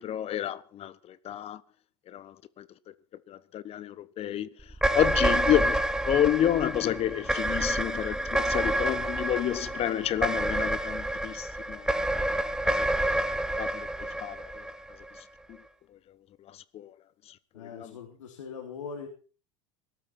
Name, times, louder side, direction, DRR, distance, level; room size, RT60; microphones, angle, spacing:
voice 1, 0.0-1.6 2.1-2.7 3.3-4.5 4.9-5.8 6.0-12.9 13.6-14.5 15.5-15.6 16.5-16.9 17.6-18.0, left 11 dB, 40° left, 1.3 m, -30 dB
sound 1, 4.7-15.2, right 1 dB, 5° right, 1.2 m, -28 dB
voice 2, 17.5-19.1, left 6 dB, 80° left, 3.5 m, -41 dB
18.5 x 12.5 x 4.4 m
hypercardioid pair, 90°, 16 cm